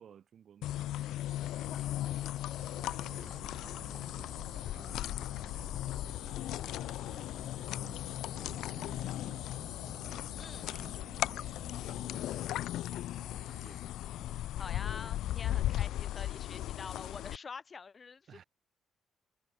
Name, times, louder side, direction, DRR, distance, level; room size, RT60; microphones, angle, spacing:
voice 1, 0.0-8.1 8.3-14.5 15.5-15.8 16.1-16.5 18.3-18.4, right 8 dB, 55° right, 7.0 m, -58 dB
sound 1, 0.6-17.4, left 13 dB, 85° left, 0.6 m, -37 dB
sound 2, 2.6-12.3, right 14 dB, 90° right, 1.8 m, -55 dB
sound 3, 6.5-11.0, left 10 dB, 65° left, 4.3 m, -65 dB
voice 2, 10.4-10.7 14.6-18.4, left 5 dB, 35° left, 0.6 m, -46 dB
cardioid pair, 110°, 0 cm